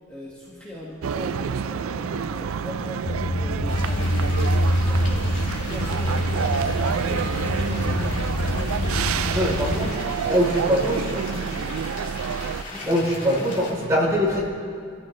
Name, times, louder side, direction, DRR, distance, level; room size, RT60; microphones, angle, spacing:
voice 1, 0.1-3.1 3.4-6.2 6.5-11.8 12.7-13.0 13.3-13.9, left 1 dB, 5° left, -8 dB, 1.8 m, -39 dB
sound 1, 1.0-12.6, right 6 dB, 90° right, 0.4 m, -28 dB
sound 2, 3.1-9.9, left 1 dB, 70° left, 0.8 m, -25 dB
sound 3, 3.7-13.7, left 2 dB, 40° left, 2.9 m, -38 dB
voice 2, 9.3-11.0 12.8-14.4, equal, 15° right, -5 dB, 3.6 m, -23 dB
26.5 x 14.0 x 3.2 m, 2.3 s
head